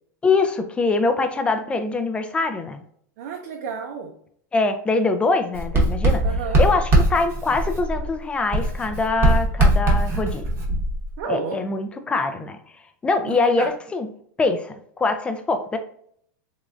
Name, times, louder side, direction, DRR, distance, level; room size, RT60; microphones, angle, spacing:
voice 1, 0.2-2.8 4.5-6.2 6.6-10.4 11.3-12.6 13.0-14.1 14.4-15.8, left 3 dB, 10° left, 8 dB, 0.3 m, -23 dB
voice 2, 3.2-4.2 6.2-6.6 9.3-9.4 11.2-11.6 13.2-13.7, right 5 dB, 65° right, 2 dB, 0.6 m, -31 dB
Writing, 5.5-8.2 8.5-11.2, right 1 dB, 25° right, 0.9 m, -21 dB
3.6 x 3.1 x 2.4 m, 0.64 s
supercardioid pair, 150°, 10 cm